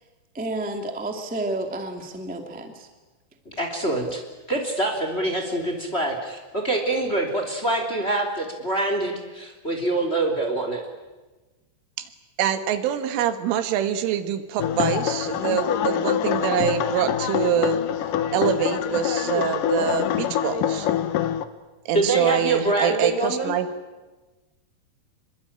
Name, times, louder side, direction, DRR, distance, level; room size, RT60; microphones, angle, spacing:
voice 1, 0.3-2.9, right 2 dB, 10° right, 4 dB, 0.5 m, -30 dB
voice 2, 3.5-4.2 4.5-10.8 21.9-23.5, right 2 dB, 15° left, 4 dB, 2.5 m, -25 dB
voice 3, 12.4-17.8 18.3-20.9 21.9-23.7, right 9 dB, 85° right, 10 dB, 4.0 m, -25 dB
sound 1, 14.6-21.4, left 10 dB, 80° left, 1.9 m, -25 dB
26.5 x 23.5 x 8.8 m, 1.2 s
omnidirectional pair, 5.5 m